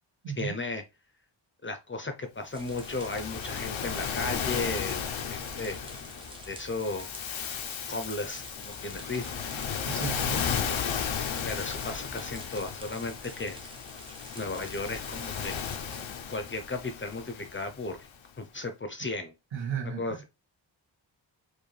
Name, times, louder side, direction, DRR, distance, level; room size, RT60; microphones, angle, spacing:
voice 1, 0.4-0.8 1.6-5.0 5.3-5.8 6.5-7.1 7.9-9.3 11.4-13.7 14.3-15.6 16.3-18.1 18.4-19.3 20.0-20.2, left 3 dB, 25° left, 0.6 m, -35 dB
Waves surf, 2.5-18.0, left 7 dB, 90° left, 0.8 m, -35 dB
sound 1, 2.5-16.0, right 1 dB, 10° right, 0.8 m, -49 dB
voice 2, 9.9-10.4 19.5-20.2, right 7 dB, 80° right, 1.5 m, -34 dB
4.6 x 2.6 x 3.2 m
wide cardioid pair, 155°, 45 cm